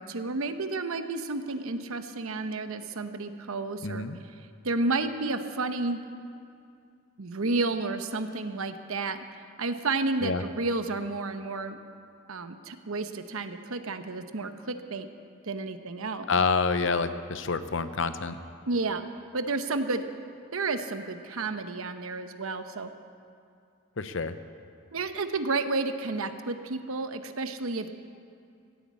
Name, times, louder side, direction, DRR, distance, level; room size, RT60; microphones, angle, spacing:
voice 1, 0.0-4.0 4.6-6.0 7.2-9.2 9.6-11.8 12.3-15.1 15.4-16.3 18.7-19.0 19.3-20.0 20.5-22.9 24.9-27.9, right 3 dB, 75° right, 9 dB, 0.9 m, -31 dB
voice 2, 3.8-4.2 10.2-10.4 16.3-18.4 24.0-24.4, left 4 dB, 60° left, 11 dB, 0.7 m, -27 dB
16.5 x 9.6 x 8.4 m, 2.4 s
head